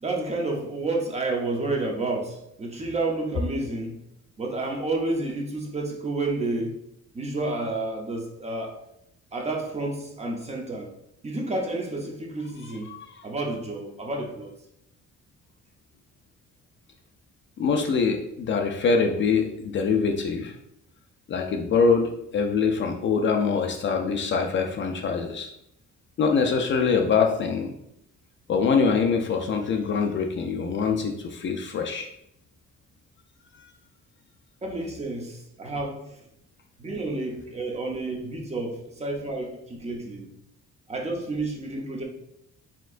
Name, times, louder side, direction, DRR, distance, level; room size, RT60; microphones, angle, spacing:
voice 1, 0.0-4.0 4.4-6.8 7.1-8.8 9.3-10.9 11.2-13.0 13.2-14.5 34.6-36.2 36.8-40.3 40.9-42.0, right 2 dB, 20° right, 1 dB, 0.6 m, -30 dB
voice 2, 17.6-20.5 21.3-25.5 26.2-27.7 28.5-32.1, left 5 dB, 40° left, 3 dB, 0.4 m, -24 dB
4.3 x 3.7 x 2.4 m, 0.78 s
cardioid pair, 150°, 29 cm